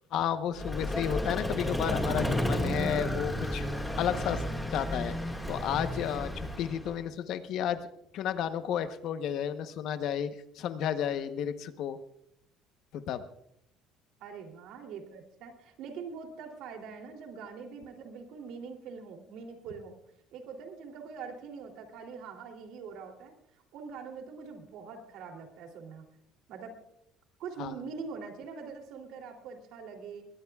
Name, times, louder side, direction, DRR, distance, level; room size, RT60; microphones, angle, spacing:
voice 1, 0.1-3.7 4.0-4.4 4.7-7.8 8.1-10.3 10.5-12.0 12.9-13.2 27.6-27.7, left 9 dB, 60° left, 10 dB, 0.9 m, -32 dB
Vehicle, 0.5-7.0, equal, 5° left, 1.9 m, -32 dB
voice 2, 14.2-20.0 20.3-26.1 26.5-26.8 27.4-30.3, right 5 dB, 70° right, 3 dB, 2.9 m, -43 dB
21.5 x 19.0 x 2.4 m, 0.77 s
cardioid pair, 155°, 0 cm